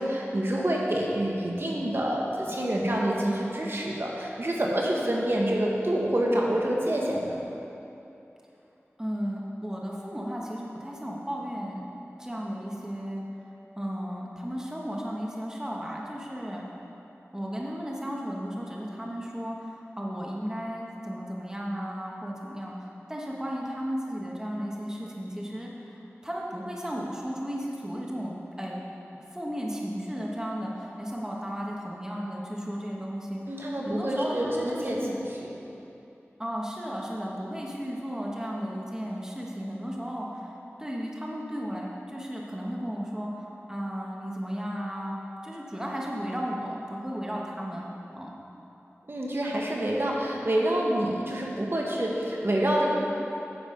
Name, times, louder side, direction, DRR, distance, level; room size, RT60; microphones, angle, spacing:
voice 1, 0.0-7.4 33.5-35.0 49.1-52.9, right 1 dB, 55° right, -2 dB, 1.3 m, -27 dB
voice 2, 9.0-11.9 12.2-13.2 13.8-16.7 17.3-28.8 29.3-35.2 36.4-48.3, equal, 15° right, -3 dB, 1.3 m, -34 dB
10.0 x 7.1 x 5.1 m, 2.9 s
wide cardioid pair, 60°, 5 cm